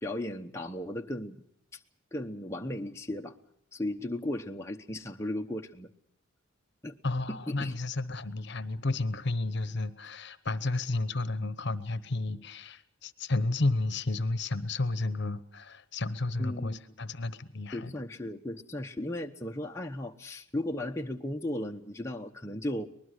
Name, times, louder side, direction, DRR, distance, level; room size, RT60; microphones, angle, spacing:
voice 1, 0.0-1.4 2.1-3.3 3.7-5.9 6.8-7.0 7.3-7.7 16.4-16.8 17.7-22.9, left 1 dB, 15° left, 2 dB, 0.9 m, -36 dB
voice 2, 7.0-17.9, left 2 dB, 55° left, 14 dB, 1.0 m, -32 dB
24.0 x 20.0 x 6.6 m, 0.68 s
head